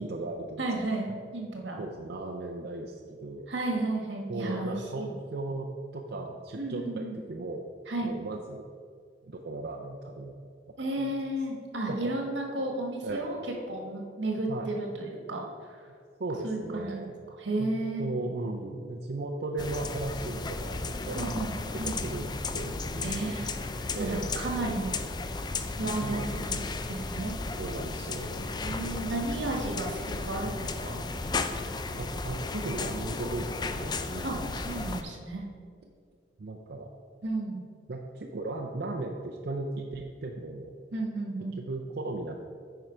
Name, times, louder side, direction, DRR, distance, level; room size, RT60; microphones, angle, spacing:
voice 1, 0.0-0.6 1.8-3.5 4.3-7.7 8.0-8.6 9.2-10.4 11.0-11.1 11.9-12.1 13.0-13.4 14.5-14.7 16.2-17.1 17.6-17.7 18.0-21.3 21.8-23.3 23.9-24.4 26.0-26.6 27.5-28.6 29.2-29.5 32.0-34.5 36.4-36.9 37.9-40.7 41.6-42.4, right 2 dB, 60° right, 0 dB, 0.5 m, -36 dB
voice 2, 0.6-1.8 3.5-5.1 6.5-7.2 7.9-8.1 10.8-13.4 13.7-15.8 16.4-17.0 17.4-18.1 21.1-21.5 21.8-22.0 23.0-23.5 24.0-25.0 25.8-26.6 26.9-27.3 28.6-31.0 34.2-35.5 37.2-37.6 40.9-41.6, right 2 dB, 85° right, 1 dB, 1.4 m, -33 dB
sound 1, 19.6-35.0, left 3 dB, 25° left, 0.4 m, -34 dB
9.6 x 4.5 x 4.9 m, 2.1 s
head